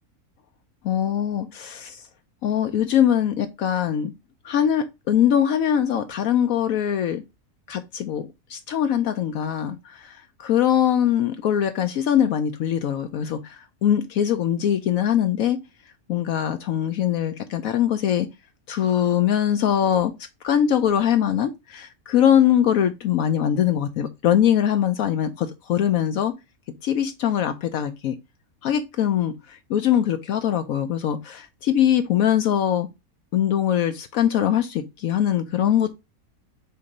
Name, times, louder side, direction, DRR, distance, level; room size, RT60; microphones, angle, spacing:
voice 1, 0.8-2.0 2.4-4.1 4.4-7.2 7.7-15.6 16.1-18.3 18.7-20.1 20.4-26.3 26.8-28.2 28.6-32.9 33.3-35.9, left 10 dB, 75° left, 1.0 m, -22 dB
6.7 x 2.6 x 5.2 m
omnidirectional pair, 1.6 m